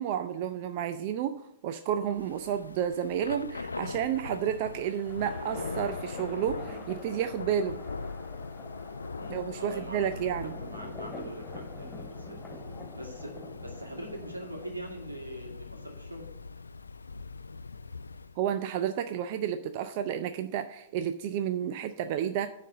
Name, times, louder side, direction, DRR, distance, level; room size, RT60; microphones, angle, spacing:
voice 1, 0.0-1.4 1.6-7.8 9.3-10.5 18.4-22.5, right 9 dB, 45° right, 9 dB, 0.5 m, -31 dB
Thunder / Rain, 2.1-18.4, left 4 dB, 80° left, 0.3 m, -41 dB
sound 1, 4.6-15.0, left 1 dB, 10° left, 2.3 m, -46 dB
voice 2, 9.1-10.2 10.7-12.6 13.0-13.3 13.6-16.3, right 1 dB, 85° right, 1 dB, 2.3 m, -43 dB
9.9 x 4.2 x 7.6 m, 0.78 s
figure-of-eight pair, 105°, 0 cm